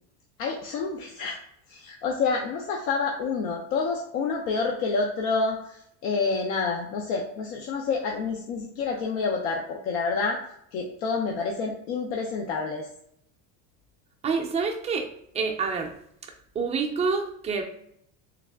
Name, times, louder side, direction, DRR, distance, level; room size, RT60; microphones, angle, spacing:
voice 1, 0.4-1.4 1.7-10.4 10.7-12.9, left 4 dB, 85° left, 0 dB, 0.7 m, -28 dB
voice 2, 14.2-15.1 15.3-15.9 16.5-17.6, right 5 dB, 15° right, 2 dB, 0.3 m, -27 dB
3.4 x 2.3 x 3.4 m, 0.71 s
supercardioid pair, 130°, 42 cm